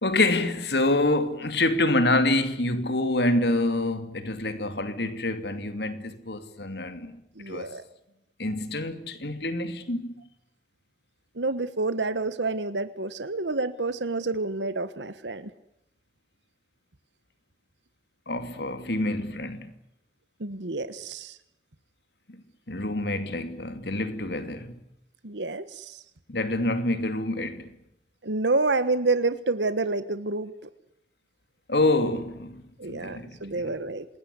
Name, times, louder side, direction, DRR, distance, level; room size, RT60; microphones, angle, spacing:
voice 1, 0.0-7.2 7.5-7.7 8.4-10.3 18.3-19.7 22.3-24.8 26.3-27.8 31.7-32.6 32.9-33.7, left 2 dB, 70° left, 2.7 m, -27 dB
voice 2, 7.3-7.8 11.3-15.5 20.4-21.4 25.2-26.0 28.2-30.7 32.8-34.1, right 3 dB, 85° right, 1.4 m, -28 dB
27.0 x 21.0 x 9.8 m
head